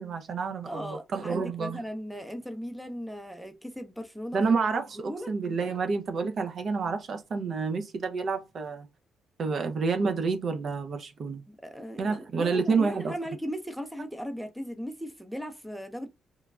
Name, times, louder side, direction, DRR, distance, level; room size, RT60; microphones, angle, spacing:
voice 1, 0.0-1.8 4.3-8.9 9.4-11.4 12.0-13.1, right 4 dB, 55° right, 0.5 m, -29 dB
voice 2, 0.6-4.4 5.1-5.3 11.5-16.1, equal, 5° right, 0.5 m, -37 dB
3.1 x 2.2 x 2.4 m
cardioid pair, 90°, 0 cm